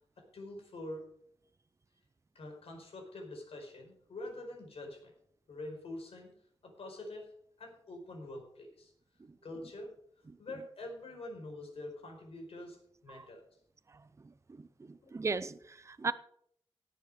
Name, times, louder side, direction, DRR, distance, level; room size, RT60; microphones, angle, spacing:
voice 1, 0.3-1.1 2.3-5.1 5.5-6.3 6.6-7.3 7.6-8.9 9.4-9.9 10.4-13.4 15.0-15.1, left 1 dB, 75° left, 5.0 m, -45 dB
voice 2, 14.2-16.1, right 4 dB, 30° right, 0.6 m, -37 dB
18.0 x 7.3 x 5.0 m
wide cardioid pair, 130°, 10 cm